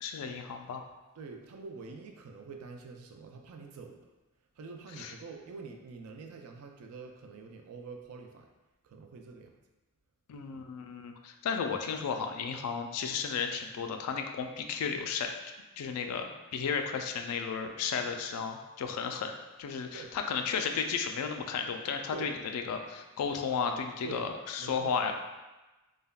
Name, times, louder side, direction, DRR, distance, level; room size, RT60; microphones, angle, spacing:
voice 1, 0.0-0.8 5.0-5.1 10.3-15.3 15.8-19.3 19.6-25.1, left 6 dB, 85° left, 5 dB, 0.3 m, -34 dB
voice 2, 1.2-4.0 4.6-8.5 8.8-9.5 19.9-20.1 22.1-22.3 24.0-24.2 24.6-24.9, right 4 dB, 80° right, 3 dB, 0.4 m, -45 dB
3.3 x 2.2 x 2.2 m, 1.1 s
head